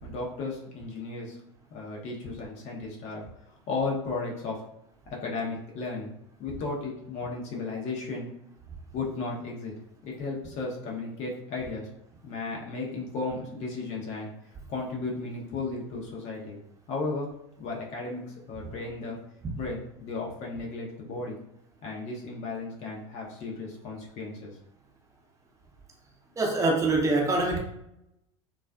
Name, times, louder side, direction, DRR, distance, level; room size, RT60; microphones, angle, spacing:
voice 1, 0.0-1.4 1.7-4.6 5.2-6.1 6.4-8.3 8.9-9.7 10.0-11.9 12.2-14.3 14.7-16.6 16.9-17.3 17.6-19.2 19.6-21.4 21.8-24.5, left 3 dB, 50° left, -2 dB, 0.6 m, -34 dB
voice 2, 26.4-27.6, right 2 dB, 20° right, 0 dB, 0.7 m, -24 dB
2.3 x 2.3 x 2.2 m, 0.80 s
hypercardioid pair, 95°, 15 cm